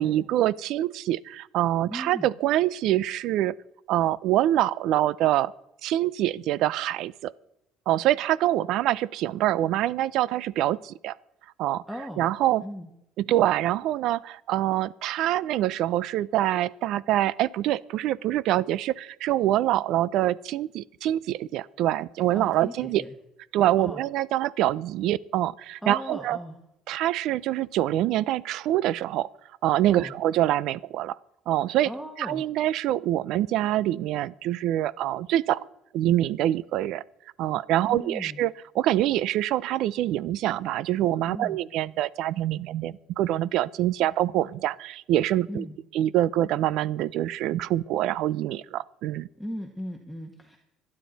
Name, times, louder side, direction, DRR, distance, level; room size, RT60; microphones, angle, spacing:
voice 1, 0.0-3.5 3.9-5.5 5.8-7.3 7.9-11.1 11.6-11.8 12.2-12.6 13.2-23.0 23.5-26.4 26.9-29.3 29.6-31.2 31.5-31.9 32.2-35.6 35.9-37.0 37.4-45.7 45.9-49.3, right 13 dB, 70° right, 21 dB, 0.4 m, -25 dB
voice 2, 1.9-2.3 11.9-12.3 12.6-12.9 22.3-23.1 23.8-24.0 25.8-26.6 29.9-30.1 31.8-32.4 37.9-38.4 41.3-41.6 45.5-45.8 49.4-50.6, equal, ahead, 2 dB, 1.4 m, -37 dB
26.0 x 9.6 x 4.0 m, 0.83 s
cardioid pair, 105°, 0 cm